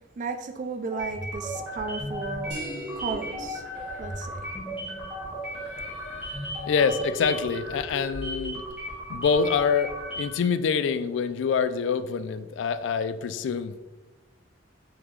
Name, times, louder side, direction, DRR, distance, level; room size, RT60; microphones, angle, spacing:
voice 1, 0.2-2.6 3.0-3.6 4.0-4.4, right 4 dB, 40° right, 7 dB, 0.4 m, -34 dB
sound 1, 0.9-10.5, equal, 5° right, 1.4 m, -35 dB
sound 2, 2.5-7.6, right 1 dB, 65° right, 1.5 m, -45 dB
Singing, 3.7-9.0, equal, 40° left, 0.9 m, -49 dB
voice 2, 6.7-8.6 9.1-13.7, left 6 dB, 80° left, 12 dB, 0.3 m, -26 dB
4.8 x 3.6 x 3.1 m, 1.1 s
head